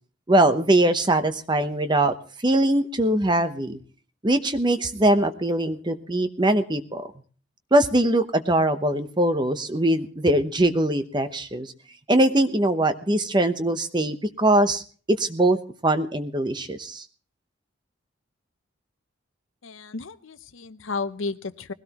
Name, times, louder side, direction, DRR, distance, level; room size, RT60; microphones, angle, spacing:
voice 1, 0.3-2.1 2.4-3.8 4.2-7.0 7.7-11.7 12.1-14.8 15.1-15.6 15.8-17.0, right 1 dB, 20° right, 9 dB, 0.9 m, -21 dB
voice 2, 19.6-21.7, left 4 dB, 75° left, 14 dB, 0.7 m, -33 dB
20.5 x 16.5 x 3.0 m, 0.41 s
head